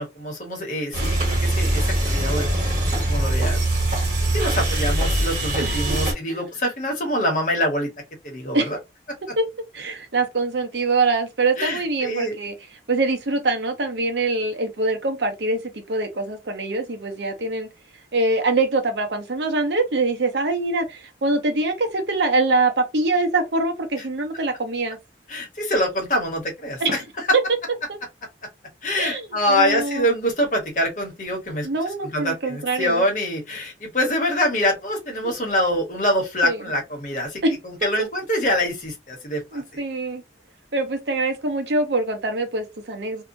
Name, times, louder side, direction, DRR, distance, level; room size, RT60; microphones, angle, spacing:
voice 1, 0.0-2.5 2.8-3.6 4.3-7.9 8.2-8.8 11.6-12.3 25.3-27.3 28.8-31.7 32.1-39.8, left 1 dB, 45° left, 1.1 m, -25 dB
sound 1, 0.9-6.1, right 1 dB, 45° right, 1.3 m, -22 dB
voice 2, 5.6-6.4 8.5-8.7 9.2-9.4 9.7-12.5 12.9-17.7 18.1-25.0 26.8-27.0 27.9-28.0 29.0-30.1 31.6-33.0 36.4-36.6 37.4-37.6 39.5-40.2 40.7-43.2, right 2 dB, 75° right, 0.8 m, -24 dB
2.8 x 2.2 x 2.6 m
head